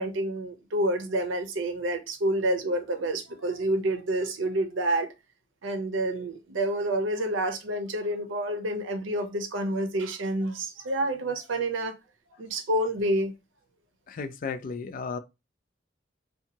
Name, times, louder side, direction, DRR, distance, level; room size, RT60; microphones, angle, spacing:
voice 1, 0.0-5.1 5.6-11.9 12.4-13.3, right 1 dB, 85° right, 0.6 m, -28 dB
voice 2, 14.1-15.2, left 5 dB, 45° left, 0.3 m, -34 dB
2.7 x 2.3 x 2.7 m
head